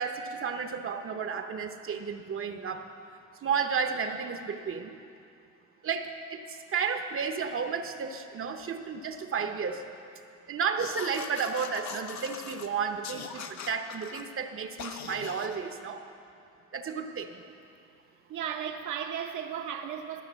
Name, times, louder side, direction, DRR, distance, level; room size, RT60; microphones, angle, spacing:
voice 1, 0.0-2.8 3.4-5.0 5.8-9.8 10.5-16.0 16.7-17.4, right 6 dB, 45° right, 6 dB, 0.8 m, -32 dB
sound 1, 10.8-12.7 13.0-14.2 14.8-15.6, left 7 dB, 65° left, 0.8 m, -41 dB
voice 2, 18.3-20.2, right 8 dB, 75° right, 5 dB, 1.0 m, -35 dB
13.0 x 5.7 x 7.4 m, 2.5 s
cardioid pair, 90°, 30 cm